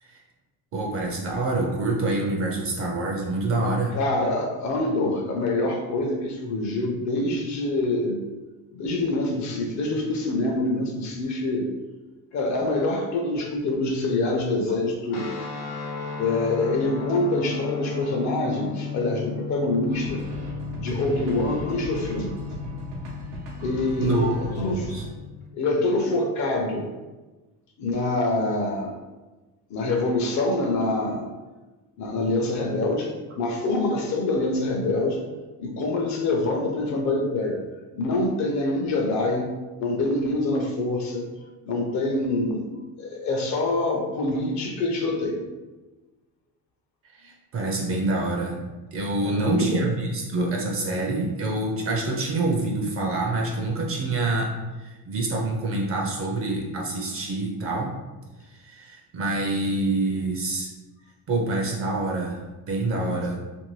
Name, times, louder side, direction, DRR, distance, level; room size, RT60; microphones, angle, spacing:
voice 1, 0.7-3.9 24.0-25.0 47.1-48.6 48.9-54.5 54.8-57.9 58.4-60.7 61.3-63.4, right 2 dB, 35° right, -1 dB, 0.5 m, -26 dB
voice 2, 3.9-8.2 8.7-11.7 12.3-15.3 16.2-20.2 20.8-22.3 23.6-24.9 25.5-26.9 27.8-29.0 29.7-31.3 32.0-35.3 35.6-37.6 38.0-39.5 39.8-41.3 41.7-45.4 49.2-49.9 63.3-63.4, left 2 dB, 50° left, 2 dB, 0.5 m, -25 dB
sound 1, 15.1-25.4, left 6 dB, 80° left, 0.9 m, -35 dB
sound 2, 19.9-25.1, right 2 dB, 85° right, 1.0 m, -37 dB
2.6 x 2.5 x 3.1 m, 1.2 s
cardioid pair, 140°, 38 cm